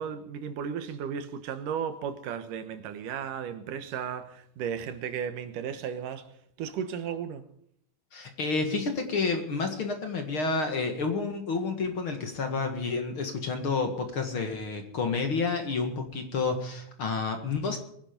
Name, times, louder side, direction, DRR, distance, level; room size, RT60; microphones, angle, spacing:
voice 1, 0.0-6.3 6.6-7.4, right 7 dB, 80° right, 2.8 m, -34 dB
voice 2, 8.1-17.8, left 4 dB, 45° left, 2.2 m, -30 dB
22.5 x 10.5 x 5.2 m
omnidirectional pair, 3.7 m